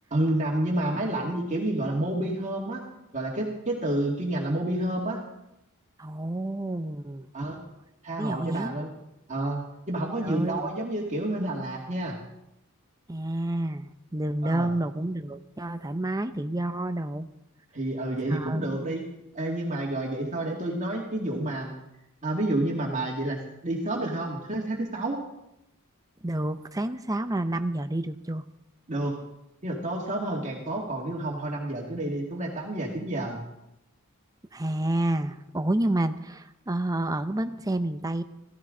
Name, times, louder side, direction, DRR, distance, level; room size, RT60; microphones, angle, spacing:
voice 1, 0.1-2.8 3.1-5.2 7.3-7.6 8.0-8.9 9.3-12.2 14.4-14.7 17.7-19.0 19.3-21.7 22.2-25.2 28.9-29.2 29.6-33.4, right 1 dB, 35° right, -2 dB, 2.2 m, -29 dB
voice 2, 6.0-7.3 8.1-8.8 10.2-10.8 13.1-17.3 18.3-18.7 26.2-28.4 34.5-38.2, right 1 dB, 15° right, 10 dB, 0.6 m, -29 dB
16.0 x 15.5 x 3.8 m, 0.87 s
head